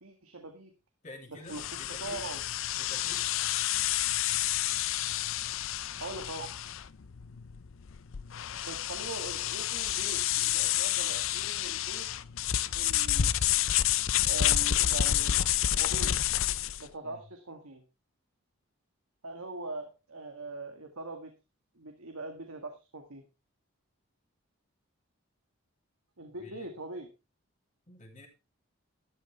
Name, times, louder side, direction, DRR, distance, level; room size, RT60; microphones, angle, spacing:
voice 1, 0.0-0.7 1.5-2.4 5.3-5.5 6.0-6.5 8.6-12.1 12.8-13.4 14.2-15.4 15.7-16.3 16.8-17.8 19.2-21.3 21.8-23.2 26.2-27.1, right 2 dB, 85° right, 4 dB, 1.9 m, -42 dB
voice 2, 1.0-2.2 2.7-3.3 17.0-17.2 26.3-26.7 27.9-28.3, left 1 dB, 35° left, 2 dB, 3.0 m, -49 dB
sound 1, 1.5-16.9, left 12 dB, 65° left, 0.5 m, -29 dB
13.0 x 11.0 x 3.4 m, 0.27 s
head